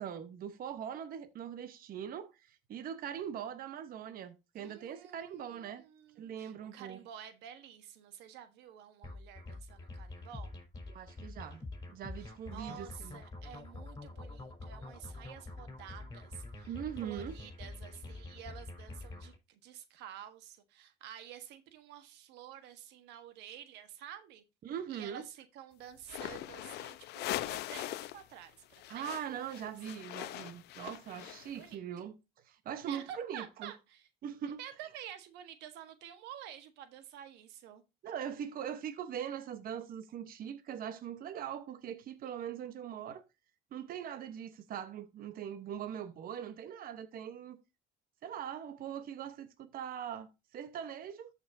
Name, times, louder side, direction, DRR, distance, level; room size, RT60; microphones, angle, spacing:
voice 1, 0.0-5.8 6.2-7.0 10.9-11.6 11.9-13.2 16.7-17.4 24.6-25.2 28.9-32.1 32.4-33.7 34.2-34.6 38.0-43.2 43.7-47.6 48.2-51.3, right 9 dB, 60° right, 1.1 m, -41 dB
voice 2, 4.6-10.5 12.2-16.7 17.0-24.4 24.9-29.1 29.5-29.7 31.2-31.8 32.8-34.1 34.6-37.8, right 10 dB, 90° right, 1.3 m, -50 dB
sound 1, 9.0-19.4, left 2 dB, 20° left, 4.2 m, -46 dB
sound 2, 26.0-28.2 28.5-31.7, left 15 dB, 80° left, 0.6 m, -41 dB
13.5 x 5.7 x 2.7 m
cardioid pair, 110°, 17 cm